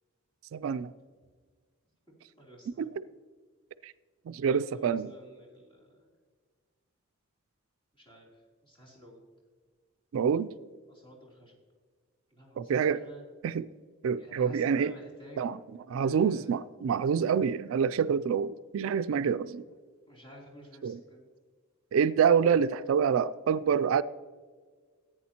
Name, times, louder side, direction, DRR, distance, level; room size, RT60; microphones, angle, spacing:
voice 1, 0.5-0.9 2.8-2.9 3.8-3.9 4.3-5.1 10.1-10.5 12.6-13.0 13.4-13.7 14.0-14.9 15.4-15.6 15.9-19.6 20.8-21.0 21.9-24.0, right 7 dB, 75° right, 0.3 m, -27 dB
voice 2, 2.4-3.1 4.5-6.1 7.9-9.3 10.9-11.6 12.3-13.2 14.2-15.5 16.0-16.5 19.6-19.8 20.1-21.2, equal, 25° left, 3.2 m, -52 dB
14.5 x 9.0 x 2.9 m
head